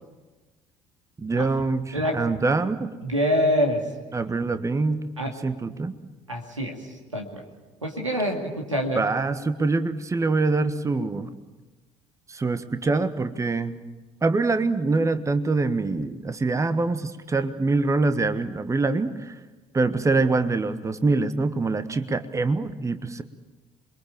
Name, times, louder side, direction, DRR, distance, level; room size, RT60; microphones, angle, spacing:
voice 1, 1.2-2.9 4.1-5.9 8.9-11.3 12.3-13.8 14.2-19.4 19.7-23.2, right 3 dB, 20° right, 11 dB, 1.3 m, -24 dB
voice 2, 3.0-3.8 5.2-5.3 6.3-6.8 7.1-7.4 7.8-9.1, equal, 85° right, 2 dB, 2.4 m, -25 dB
27.5 x 22.5 x 7.4 m, 1.2 s
figure-of-eight pair, 55°, 16 cm